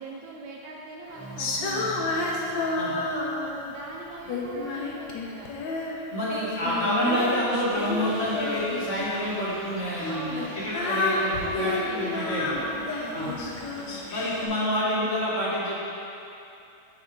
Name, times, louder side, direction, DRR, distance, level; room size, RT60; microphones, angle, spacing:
voice 1, 0.0-2.1 3.7-5.5 10.1-14.0, right 3 dB, 75° right, -2 dB, 1.1 m, -41 dB
sound 1, 1.1-4.5, right 3 dB, 15° right, 1.3 m, -46 dB
Female singing, 1.4-3.8 4.3-6.0 6.3-9.1 9.9-14.5, left 2 dB, 70° left, 1.4 m, -30 dB
voice 2, 6.1-12.6 13.1-13.3 14.1-15.8, equal, 45° left, -8 dB, 1.2 m, -28 dB
sound 2, 7.7-14.6, right 1 dB, 50° right, 0.6 m, -44 dB
7.6 x 4.2 x 4.4 m, 2.8 s
omnidirectional pair, 2.2 m